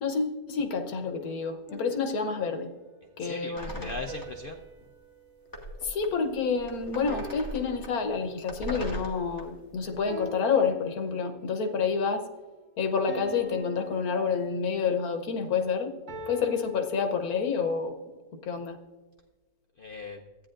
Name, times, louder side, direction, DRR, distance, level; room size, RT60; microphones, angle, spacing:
voice 1, 0.0-2.7 3.2-3.9 5.8-12.2 12.8-15.9 16.3-18.0 18.4-18.8, left 5 dB, 85° left, 6 dB, 1.5 m, -28 dB
sound 1, 1.7-2.9 4.1-6.5 7.1-8.6 10.1-11.6 13.1-15.0 16.1-17.7, right 1 dB, 75° right, 1.7 m, -45 dB
voice 2, 3.0-4.6 19.8-20.2, left 3 dB, 55° left, 2 dB, 0.6 m, -39 dB
sound 2, 3.6-4.5 4.8-4.9 5.5-10.1, equal, 15° left, 1.5 m, -41 dB
14.0 x 9.4 x 2.5 m, 1.3 s
omnidirectional pair, 1.5 m